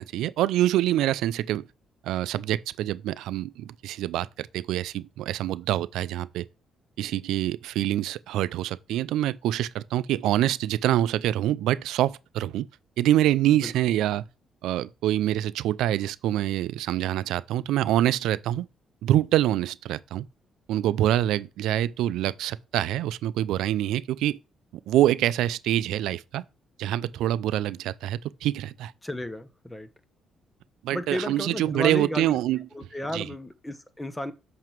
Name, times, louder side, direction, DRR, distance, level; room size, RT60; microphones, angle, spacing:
voice 1, 0.0-1.6 2.0-6.4 7.0-12.7 13.0-14.2 14.6-18.7 19.0-20.3 20.7-24.4 24.9-26.4 26.8-28.9 30.8-32.7 33.1-33.3, right 13 dB, 90° right, 0.3 m, -25 dB
voice 2, 29.0-29.9 30.9-32.4 32.7-34.3, left 1 dB, 10° left, 1.0 m, -33 dB
7.6 x 5.9 x 4.5 m
cardioid pair, 90°, 0 cm